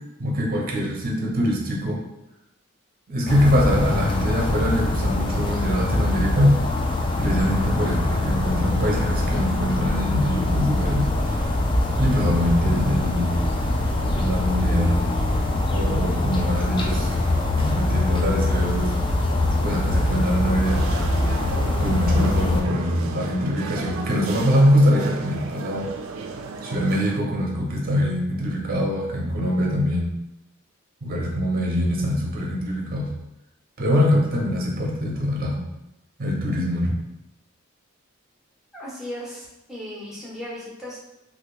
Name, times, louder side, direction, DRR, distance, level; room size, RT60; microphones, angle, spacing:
voice 1, 0.2-2.0 3.1-6.5 7.2-11.1 12.0-13.4 14.2-15.0 15.7-17.1 17.6-18.9 19.6-20.8 21.8-25.9 26.6-30.1 31.0-33.1 33.8-35.6 36.2-37.0, equal, 45° right, -1 dB, 0.7 m, -23 dB
sound 1, 3.3-22.6, left 2 dB, 25° left, 0.3 m, -23 dB
sound 2, 20.7-27.2, right 4 dB, 90° right, 0.3 m, -34 dB
voice 2, 38.7-41.0, left 1 dB, ahead, -7 dB, 0.7 m, -36 dB
2.7 x 2.5 x 3.1 m, 0.92 s
head